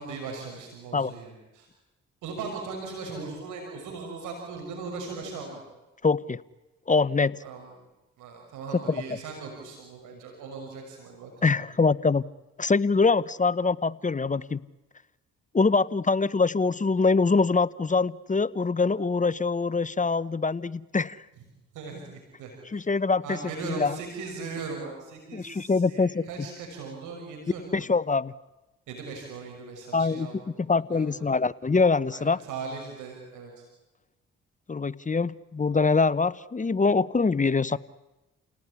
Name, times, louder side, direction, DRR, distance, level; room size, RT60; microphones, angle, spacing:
voice 1, 0.0-1.7 2.2-5.6 7.4-7.7 8.2-11.6 21.7-22.8 23.2-27.9 28.9-31.2 32.1-33.6, right 4 dB, 85° right, 2 dB, 6.2 m, -39 dB
voice 2, 6.0-6.4 6.9-7.4 8.9-9.0 11.4-12.2 12.6-14.6 15.5-21.2 22.7-23.4 23.6-24.0 25.3-26.5 27.7-28.3 29.9-30.3 30.6-32.4 34.7-37.8, left 4 dB, 25° left, 18 dB, 0.9 m, -24 dB
29.5 x 18.5 x 9.8 m, 1.1 s
supercardioid pair, 55°, 30 cm